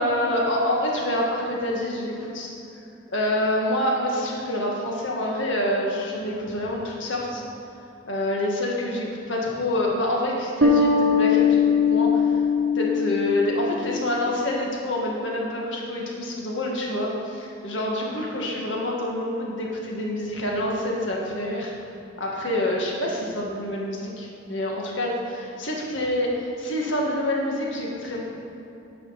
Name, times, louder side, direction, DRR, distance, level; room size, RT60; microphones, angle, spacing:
voice 1, 0.0-2.5 3.1-7.4 8.1-11.6 11.9-12.4 12.7-21.7 22.2-28.2, left 1 dB, 80° left, -2 dB, 1.8 m, -27 dB
sound 1, 10.6-14.0, left 5 dB, 90° right, 1.2 m, -20 dB
10.5 x 6.0 x 5.8 m, 2.8 s
head